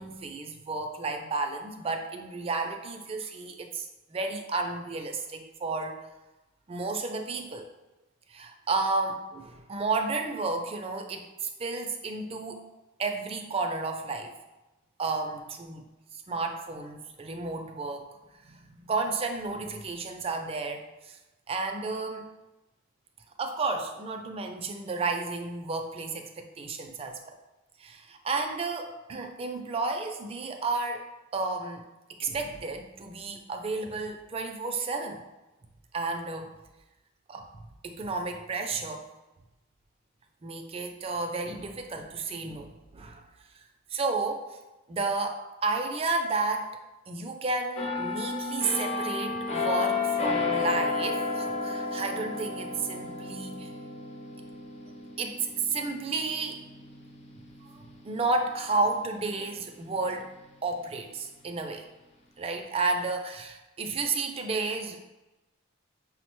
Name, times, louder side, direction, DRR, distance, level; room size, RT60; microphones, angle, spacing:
voice 1, 0.0-6.0 6.7-7.7 8.3-12.6 13.0-14.3 15.0-15.8 16.3-18.2 18.4-21.2 21.5-22.3 23.4-27.2 27.8-31.1 31.3-31.8 32.2-35.2 35.9-36.6 37.3-37.5 37.8-39.1 40.4-43.2 43.9-44.4 44.9-46.8 47.1-53.7 55.2-56.6 57.6-60.3 60.6-61.8 62.4-65.1, right 3 dB, 30° right, 4 dB, 0.3 m, -32 dB
sound 1, 47.8-59.3 59.7-60.0, left 4 dB, 30° left, 0.5 m, -33 dB
5.7 x 2.1 x 2.9 m, 1.0 s
head